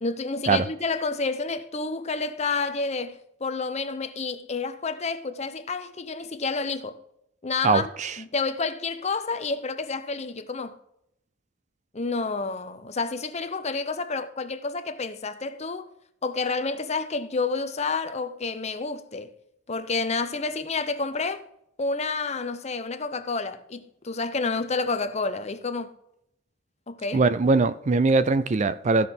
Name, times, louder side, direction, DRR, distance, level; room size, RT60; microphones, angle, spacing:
voice 1, 0.0-7.0 7.4-7.9 8.2-10.8 11.9-15.9 16.2-19.3 19.7-21.4 21.8-25.9 26.9-27.2, left 4 dB, 30° left, 0.7 m, -29 dB
voice 2, 7.6-8.2 27.1-29.1, right 3 dB, 35° right, 0.4 m, -21 dB
15.0 x 5.8 x 3.7 m
head